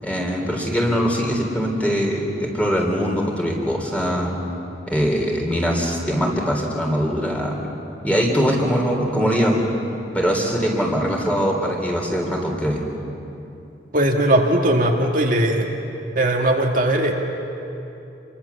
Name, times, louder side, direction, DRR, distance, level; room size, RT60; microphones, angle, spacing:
voice 1, 0.0-4.4 4.9-7.6 8.0-9.6 10.1-12.8, equal, 10° left, 0 dB, 3.7 m, -22 dB
voice 2, 13.9-15.7 16.1-17.1, right 1 dB, 50° right, 0 dB, 2.0 m, -19 dB
28.5 x 24.0 x 7.2 m, 2.9 s
head